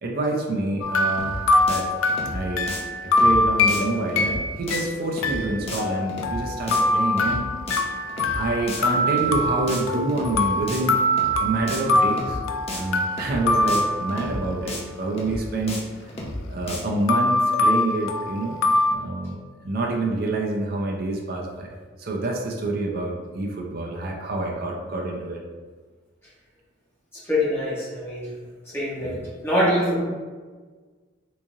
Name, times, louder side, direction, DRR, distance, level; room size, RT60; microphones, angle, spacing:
voice 1, 0.0-1.9 2.3-2.7 3.0-7.5 8.4-11.0 11.4-12.4 12.7-16.1 16.5-18.6 18.9-19.4 19.6-21.7 22.0-25.4 29.0-29.1, right 2 dB, 50° right, -1 dB, 0.4 m, -27 dB
sound 1, 0.8-14.6 17.1-18.9, left 2 dB, 85° left, 0.3 m, -23 dB
sound 2, 1.2-1.4 1.7-1.8 2.1-2.4 2.7-2.8 3.2-3.4 3.7-3.8 4.1-4.4 4.7-4.8 5.2-5.4 5.7-5.8 6.1-6.4 6.7-6.8 7.2-7.4 7.7-7.8 8.1-8.4 8.7-8.8 9.2-9.4 9.7-9.8 10.1-10.4 10.7-10.8 11.2-11.4 11.7-11.8 12.1-12.4 12.7-12.8 13.2-13.4 13.7-13.8 14.1-14.4 14.7-14.8 15.2-15.4 15.7-15.8 16.1-16.4 16.7-16.8, left 1 dB, 30° left, 0.5 m, -33 dB
voice 2, 27.1-28.3 28.7-29.1 29.4-30.0, left 1 dB, 10° left, -8 dB, 1.0 m, -24 dB
3.6 x 3.0 x 2.6 m, 1.4 s
head